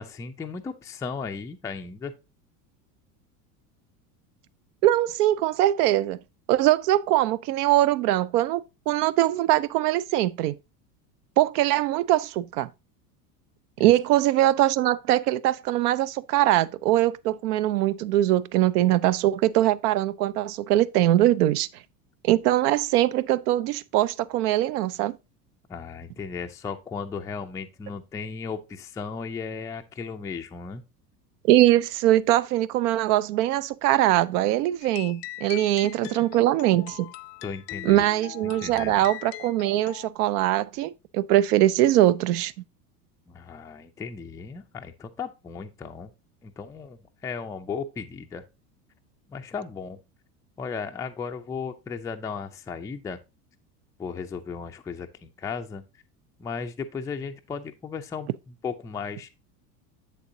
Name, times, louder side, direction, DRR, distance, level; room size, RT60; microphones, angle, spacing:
voice 1, 0.0-2.1 13.8-13.9 25.7-30.8 37.4-38.0 38.4-39.0 43.3-46.1 46.4-48.4 49.3-50.0 50.6-53.2 54.0-55.8 56.4-59.3, left 5 dB, 10° left, 0.3 m, -35 dB
voice 2, 4.8-6.2 6.5-10.6 11.4-12.7 13.8-21.7 22.2-25.2 31.4-37.1 37.8-42.5, right 14 dB, 70° right, 0.6 m, -22 dB
sound 1, 34.8-40.1, left 16 dB, 80° left, 0.6 m, -41 dB
7.3 x 6.8 x 2.6 m
hypercardioid pair, 90°, 48 cm